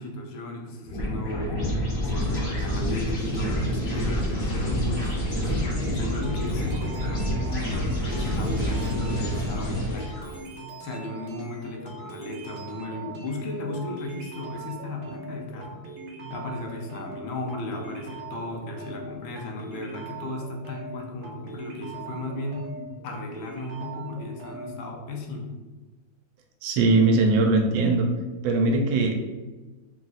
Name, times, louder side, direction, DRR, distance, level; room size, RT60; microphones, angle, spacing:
voice 1, 0.0-10.2 10.8-15.8 16.3-22.7 23.0-25.5, left 2 dB, 85° left, 1 dB, 1.4 m, -35 dB
sound 1, 0.9-10.3, equal, 40° left, 0.9 m, -27 dB
sound 2, 5.8-25.0, right 3 dB, 65° right, 0.8 m, -41 dB
voice 2, 26.6-28.1 28.4-29.2, right 3 dB, 80° right, 3 dB, 1.4 m, -20 dB
3.8 x 2.4 x 4.0 m, 1.2 s
omnidirectional pair, 2.1 m